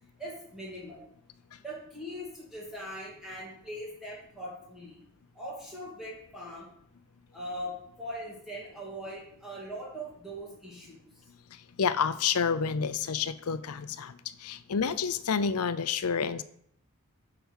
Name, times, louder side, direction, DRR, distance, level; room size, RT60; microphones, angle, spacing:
voice 1, 0.2-1.0 1.6-5.0 5.3-6.7 7.3-11.0, equal, ahead, -6 dB, 2.5 m, -41 dB
voice 2, 11.8-16.4, left 6 dB, 85° left, 13 dB, 0.6 m, -29 dB
6.7 x 6.0 x 6.4 m, 0.70 s
head